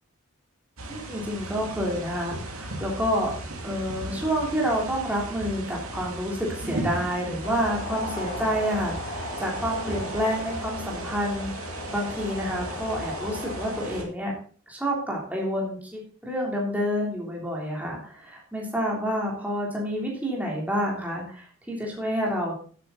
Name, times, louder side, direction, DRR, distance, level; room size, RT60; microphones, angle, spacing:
sound 1, 0.8-14.0, right 2 dB, 80° right, 2.6 m, -37 dB
voice 1, 0.9-3.3 3.6-14.3 14.7-22.5, equal, 5° right, -2 dB, 3.4 m, -29 dB
sound 2, 7.4-14.0, left 2 dB, 35° left, 3.2 m, -37 dB
11.0 x 8.6 x 4.0 m, 0.44 s
head